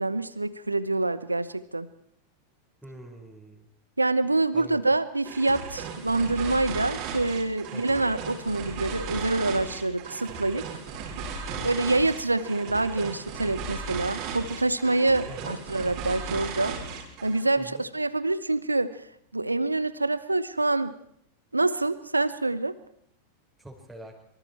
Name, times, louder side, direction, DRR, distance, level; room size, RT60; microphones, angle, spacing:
voice 1, 0.0-1.9 4.0-10.7 11.6-16.8 17.2-19.0 19.3-21.0 21.5-22.7, right 2 dB, 85° right, 16 dB, 1.1 m, -26 dB
voice 2, 2.8-3.7 4.5-4.8 7.7-8.0 11.5-11.8 15.3-15.6 17.6-17.8 23.6-24.1, right 1 dB, ahead, -2 dB, 4.7 m, -44 dB
sound 1, 5.2-17.5, right 5 dB, 40° right, 4.3 m, -36 dB
25.5 x 24.0 x 4.5 m, 0.70 s
figure-of-eight pair, 90°, 0 cm